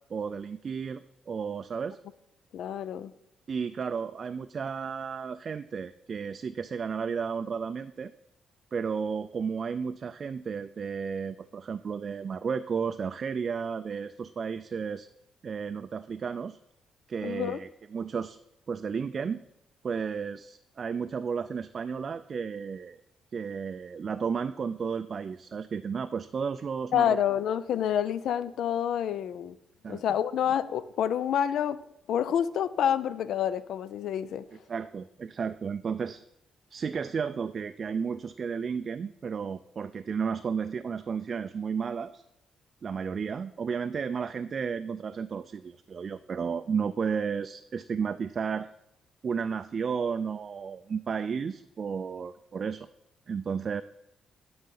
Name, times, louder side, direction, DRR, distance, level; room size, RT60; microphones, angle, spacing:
voice 1, 0.1-2.0 3.5-8.1 8.7-15.1 15.4-16.6 17.1-18.4 18.7-19.4 19.8-23.0 23.3-27.2 29.8-30.0 34.7-36.2 36.7-42.2 42.8-48.7 49.2-52.9 53.3-53.8, right 6 dB, 45° right, 10 dB, 0.3 m, -33 dB
voice 2, 2.5-3.1 17.2-17.6 26.9-29.6 29.9-31.8 32.1-34.4, left 9 dB, 75° left, 16 dB, 0.4 m, -28 dB
11.5 x 3.9 x 5.6 m, 0.83 s
cardioid pair, 90°, 0 cm